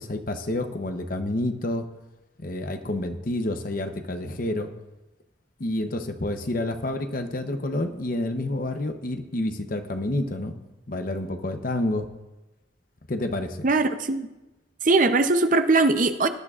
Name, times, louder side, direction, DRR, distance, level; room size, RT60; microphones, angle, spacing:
voice 1, 0.0-1.8 2.4-4.7 5.6-10.5 10.9-12.1 13.1-13.7, left 1 dB, 45° left, 7 dB, 0.8 m, -29 dB
voice 2, 13.6-14.3 14.8-16.3, right 3 dB, 40° right, 9 dB, 0.6 m, -20 dB
18.5 x 11.0 x 2.4 m, 1.0 s
head